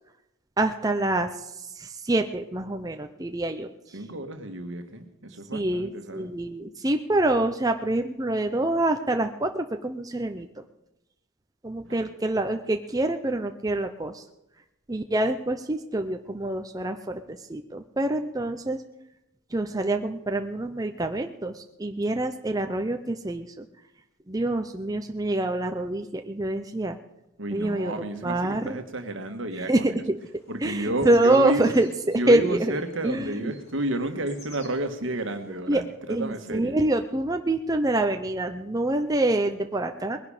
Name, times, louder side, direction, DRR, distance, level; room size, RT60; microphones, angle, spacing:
voice 1, 0.6-3.7 5.5-10.5 11.6-14.2 14.9-18.8 19.5-23.7 24.3-27.0 27.5-28.8 29.7-30.2 30.6-32.8 33.0-33.5 35.7-40.2, right 1 dB, 20° right, 6 dB, 0.6 m, -26 dB
voice 2, 3.9-6.3 11.8-12.1 27.4-30.0 30.5-31.8 32.1-36.8, right 1 dB, 70° right, 7 dB, 1.6 m, -31 dB
sound 1, 30.2-35.5, left 1 dB, 30° left, 4.1 m, -53 dB
20.5 x 11.0 x 5.0 m, 0.88 s
head